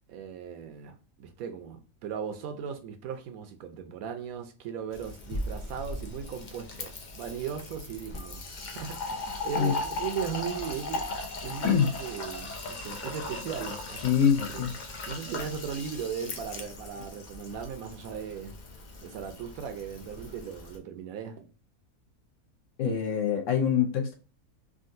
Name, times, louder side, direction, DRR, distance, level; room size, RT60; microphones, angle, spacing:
voice 1, 0.1-14.0 14.5-14.7 15.1-18.5 19.0-21.5, right 7 dB, 75° right, 1.0 m, -38 dB
Fill (with liquid), 4.9-20.8, left 2 dB, 80° left, 0.4 m, -38 dB
voice 2, 14.0-14.7 22.8-24.1, left 8 dB, 65° left, 0.9 m, -24 dB
3.7 x 2.3 x 2.5 m
omnidirectional pair, 1.6 m